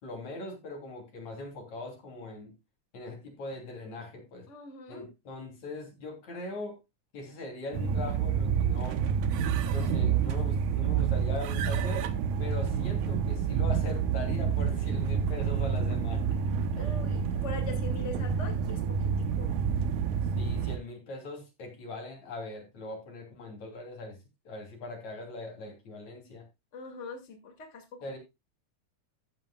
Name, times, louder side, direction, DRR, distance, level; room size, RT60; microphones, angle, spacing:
voice 1, 0.0-2.5 2.9-4.5 4.9-6.8 7.1-9.0 9.7-12.1 12.4-17.0 20.4-24.2 24.4-26.5 28.0-28.2, left 2 dB, 70° left, 4.4 m, -41 dB
voice 2, 4.5-5.1 16.8-19.6 26.7-27.8, left 3 dB, 25° left, 2.2 m, -42 dB
sound 1, 7.7-20.8, right 7 dB, 90° right, 2.4 m, -28 dB
13.5 x 8.6 x 2.3 m
omnidirectional pair, 3.4 m